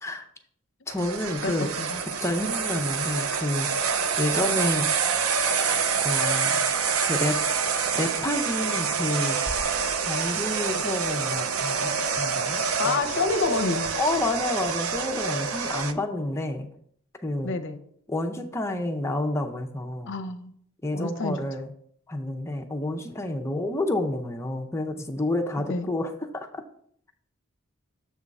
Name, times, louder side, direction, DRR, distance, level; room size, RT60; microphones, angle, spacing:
voice 1, 0.9-1.7 2.2-3.7 4.2-4.9 6.0-6.6 7.0-7.4 7.9-9.4 10.0-12.9 14.0-16.7 17.2-17.5 18.1-20.2 20.8-21.7 22.1-26.6, left 1 dB, 15° left, 4 dB, 0.5 m, -29 dB
sound 1, 0.9-15.9, right 5 dB, 90° right, 0.6 m, -27 dB
voice 2, 1.4-2.0 12.8-13.9 17.4-17.8 20.1-20.5 20.9-21.4 25.7-25.9, left 3 dB, 60° left, 9 dB, 0.6 m, -28 dB
sound 2, 9.5-11.3, left 1 dB, 45° right, 1.9 m, -42 dB
7.4 x 3.6 x 5.2 m, 0.65 s
head